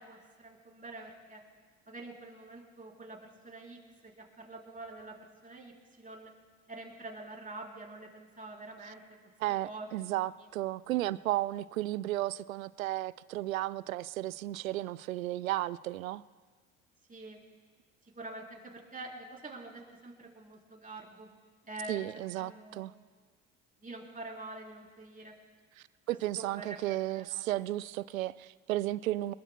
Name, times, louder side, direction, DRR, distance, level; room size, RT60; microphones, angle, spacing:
voice 1, 0.0-1.4 1.9-5.2 5.4-5.7 6.0-6.3 6.7-9.0 9.6-10.3 17.1-17.4 18.2-21.3 21.6-22.0 22.4-22.9 23.8-25.3 26.4-27.5, right 2 dB, 20° right, -1 dB, 3.9 m, -46 dB
voice 2, 9.4-16.2 21.9-22.9 26.1-29.3, right 15 dB, 80° right, 19 dB, 0.5 m, -34 dB
24.5 x 21.0 x 2.2 m, 1.5 s
hypercardioid pair, 65°, 40 cm